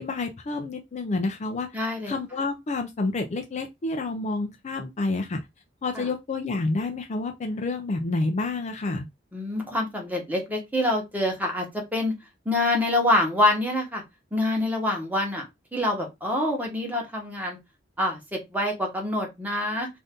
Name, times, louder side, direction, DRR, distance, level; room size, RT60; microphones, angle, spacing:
voice 1, 0.0-1.7 2.1-5.4 5.8-9.1, left 3 dB, 40° left, 0.4 m, -29 dB
voice 2, 1.7-2.1 5.9-6.1 9.3-11.7 11.9-12.2 12.4-14.0 14.3-15.4 15.7-17.6 18.0-19.9, left 1 dB, 10° right, 1.0 m, -26 dB
2.6 x 2.5 x 3.3 m
head